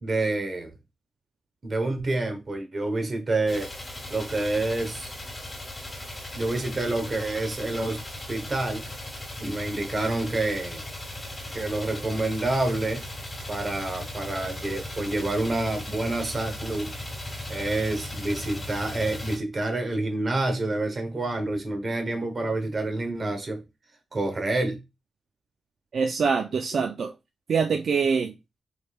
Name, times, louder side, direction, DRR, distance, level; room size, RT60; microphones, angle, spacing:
voice 1, 0.0-0.7 1.6-3.7 4.1-5.1 6.3-8.0 8.3-8.9 9.4-10.8 11.5-13.0 13.5-16.9 17.5-23.6 24.1-24.8, right 2 dB, 40° right, 0.9 m, -28 dB
sound 1, 3.5-19.4, left 1 dB, 25° left, 1.7 m, -37 dB
voice 2, 25.9-27.1 27.5-28.3, right 5 dB, 65° right, 0.3 m, -24 dB
3.3 x 3.3 x 2.4 m
cardioid pair, 80°, 0 cm